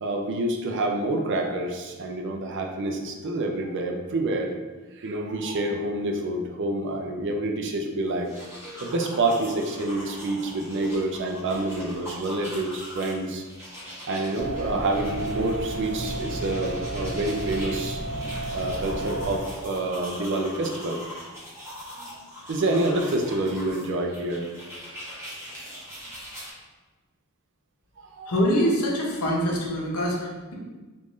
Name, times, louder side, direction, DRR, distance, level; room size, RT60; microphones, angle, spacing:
voice 1, 0.0-4.5 5.0-13.4 14.1-18.0 18.5-21.0 22.0-22.1 22.5-24.5 28.0-28.3, right 2 dB, 55° right, 3 dB, 0.4 m, -28 dB
sound 1, 8.1-26.5, equal, 10° right, 0.9 m, -41 dB
sound 2, 14.4-19.4, right 1 dB, 30° left, 0.5 m, -32 dB
voice 2, 28.3-30.5, equal, 85° left, -3 dB, 0.9 m, -24 dB
3.6 x 2.5 x 3.1 m, 1.3 s
head